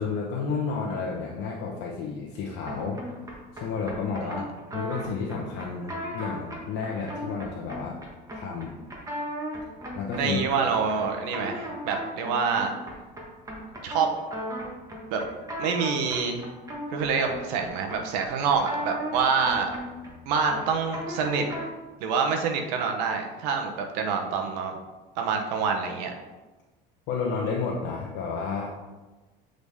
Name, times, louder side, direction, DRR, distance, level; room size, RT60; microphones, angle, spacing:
voice 1, 0.0-3.0 3.5-4.5 4.7-8.0 8.3-8.8 9.9-10.6 27.1-28.7, left 5 dB, 60° left, -3 dB, 1.0 m, -31 dB
sound 1, 2.6-21.8, equal, 15° right, 1.5 m, -37 dB
voice 2, 10.2-12.7 13.8-14.1 15.1-15.2 15.6-16.4 16.9-19.7 20.3-21.4 22.0-24.8 25.2-26.1, right 5 dB, 85° right, 3 dB, 1.0 m, -26 dB
8.1 x 3.9 x 3.5 m, 1.2 s
supercardioid pair, 120°, 21 cm